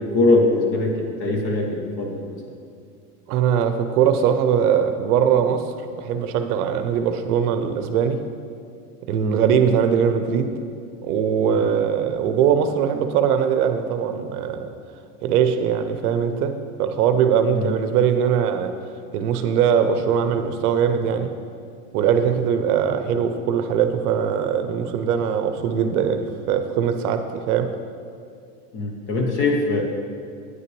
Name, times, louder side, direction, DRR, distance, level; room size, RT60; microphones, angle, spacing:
voice 1, 0.0-2.4 9.2-9.4 11.5-11.8 17.5-17.7 28.7-29.8, left 2 dB, 30° left, 2 dB, 0.4 m, -22 dB
voice 2, 3.3-5.7 6.0-8.2 9.1-10.5 11.0-14.7 15.2-18.7 19.1-21.3 21.9-27.7, right 8 dB, 70° right, 9 dB, 0.7 m, -21 dB
9.3 x 5.7 x 3.1 m, 2.4 s
supercardioid pair, 150°, 48 cm